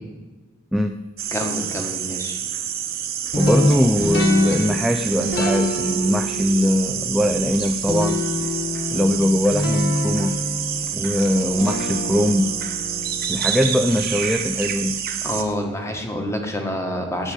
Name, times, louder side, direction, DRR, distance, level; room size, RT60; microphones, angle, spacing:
sound 1, 1.2-15.4, right 9 dB, 50° right, 1.0 m, -28 dB
voice 1, 1.3-2.4 15.2-17.3, equal, 15° left, 3 dB, 1.5 m, -27 dB
sound 2, 3.3-14.4, left 1 dB, 50° left, 1.6 m, -27 dB
voice 2, 3.3-8.2 8.9-10.4 10.9-12.5 13.3-15.0, left 1 dB, ahead, 5 dB, 0.4 m, -21 dB
9.7 x 8.0 x 8.0 m, 1.2 s
head